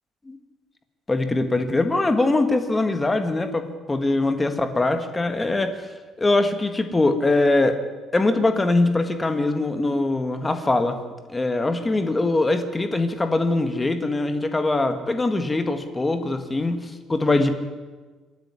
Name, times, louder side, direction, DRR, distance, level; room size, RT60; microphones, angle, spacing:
voice 1, 1.1-5.8 6.2-7.8 8.1-11.0 11.3-17.5, left 2 dB, 15° left, 8 dB, 1.7 m, -22 dB
26.5 x 10.5 x 9.8 m, 1.3 s
cardioid pair, 155°, 0 cm